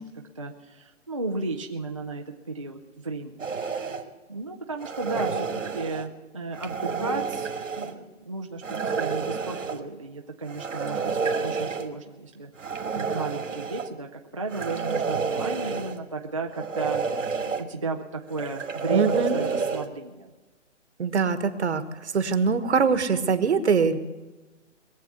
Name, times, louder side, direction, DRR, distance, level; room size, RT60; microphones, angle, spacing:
voice 1, 0.0-3.5 3.9-4.0 4.3-11.1 11.4-17.0 17.3-20.3, right 3 dB, 25° right, 1 dB, 0.5 m, -34 dB
sound 1, 3.4-4.0 4.8-6.1 6.5-7.9 8.6-9.8 10.5-11.9 12.6-13.9 14.5-16.0 16.5-17.6 18.3-19.9, right 5 dB, 90° right, 2.2 m, -29 dB
voice 2, 18.9-19.4 21.0-21.8 22.1-24.0, right 5 dB, 60° right, 11 dB, 1.4 m, -23 dB
21.0 x 7.5 x 8.2 m, 1.2 s
hypercardioid pair, 175°, 38 cm